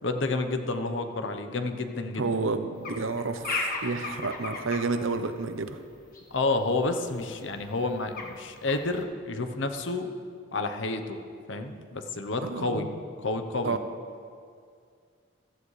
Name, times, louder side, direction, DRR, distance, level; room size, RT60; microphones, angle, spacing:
voice 1, 0.0-2.3 6.3-10.1 10.5-11.2 11.5-12.9 13.2-13.7, left 2 dB, 65° left, 6 dB, 0.9 m, -30 dB
voice 2, 2.2-5.8 12.4-13.0 13.6-13.8, right 3 dB, 80° right, 9 dB, 0.8 m, -30 dB
sound 1, 2.8-4.8 6.1-6.2 6.8-6.9 7.2-7.3 7.6-8.4 8.6-9.0, left 3 dB, 45° left, 1.3 m, -34 dB
15.0 x 13.5 x 3.3 m, 2.2 s
head